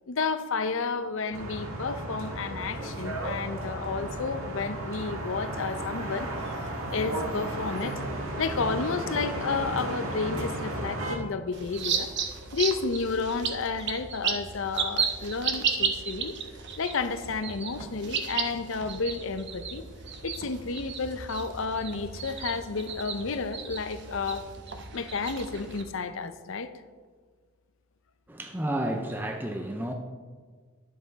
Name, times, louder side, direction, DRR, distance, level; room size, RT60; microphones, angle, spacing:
voice 1, 0.1-6.5 6.9-8.0 8.4-12.1 12.5-16.3 16.8-19.8 20.2-24.5 24.9-26.7, left 4 dB, 60° left, 11 dB, 0.6 m, -31 dB
sound 1, 1.3-11.2, right 1 dB, 75° right, 1.7 m, -34 dB
sound 2, 11.5-25.8, right 6 dB, 55° right, 0.9 m, -34 dB
voice 2, 28.3-29.9, right 1 dB, 10° right, 3 dB, 0.5 m, -31 dB
11.5 x 7.5 x 4.0 m, 1.5 s
head